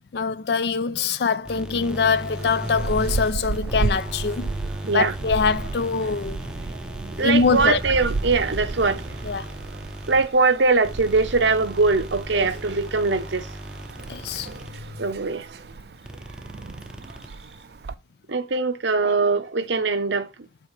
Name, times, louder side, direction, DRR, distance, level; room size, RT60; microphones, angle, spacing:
voice 1, 0.1-4.5 4.9-6.4 7.2-7.8 9.2-9.5 12.3-12.5 14.1-14.5, left 5 dB, 60° left, 0.4 m, -23 dB
sound 1, 1.4-14.9 16.0-17.6, right 1 dB, 5° right, 0.6 m, -36 dB
sound 2, 2.4-17.9, right 3 dB, 60° right, 0.4 m, -34 dB
voice 2, 7.1-9.0 10.1-13.5 15.0-15.5 18.3-20.3, right 4 dB, 80° right, 0.8 m, -21 dB
7.6 x 4.6 x 3.2 m
head